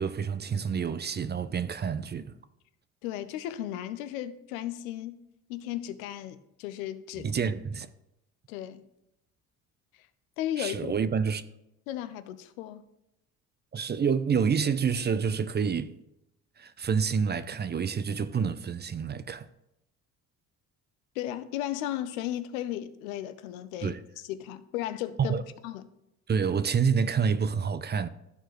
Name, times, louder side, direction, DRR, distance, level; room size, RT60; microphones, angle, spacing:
voice 1, 0.0-2.3 7.2-7.9 10.6-11.4 13.7-15.9 16.6-19.5 23.8-24.0 25.2-25.4 26.3-28.1, right 6 dB, 25° right, 0.5 m, -28 dB
voice 2, 3.0-5.2 5.5-7.3 8.5-8.8 10.0-10.1 10.4-10.9 11.9-12.8 21.2-24.0 24.3-25.9, left 12 dB, 90° left, 0.6 m, -35 dB
12.5 x 4.5 x 3.1 m
hypercardioid pair, 60°, 41 cm